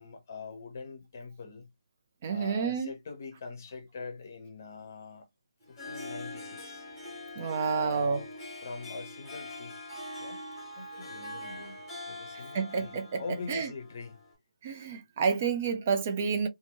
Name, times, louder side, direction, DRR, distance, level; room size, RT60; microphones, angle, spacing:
voice 1, 0.0-1.7 2.3-5.3 5.7-6.9 7.6-8.3 8.6-9.8 10.2-10.4 10.8-14.2, left 4 dB, 25° left, 0.7 m, -43 dB
voice 2, 2.2-2.9 7.4-8.2 12.5-13.7 14.6-16.5, right 5 dB, 15° right, 0.3 m, -29 dB
Harp, 5.6-14.3, left 1 dB, 5° left, 1.0 m, -43 dB
2.6 x 2.6 x 2.9 m
hypercardioid pair, 175°, 3 cm